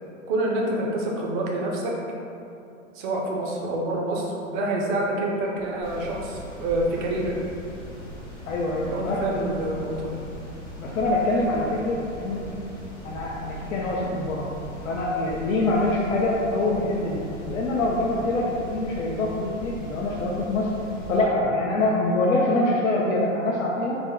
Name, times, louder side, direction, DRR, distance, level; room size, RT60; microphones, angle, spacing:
voice 1, 0.3-1.9 2.9-7.3 8.9-10.2, right 1 dB, 40° right, -1 dB, 0.6 m, -27 dB
sound 1, 5.8-21.2, equal, 10° left, 0.3 m, -40 dB
voice 2, 8.5-9.5 10.8-12.5 13.0-14.5 14.8-20.7 21.1-24.0, left 2 dB, 75° left, -5 dB, 0.6 m, -25 dB
3.4 x 2.1 x 3.5 m, 2.7 s
hypercardioid pair, 115°, 40 cm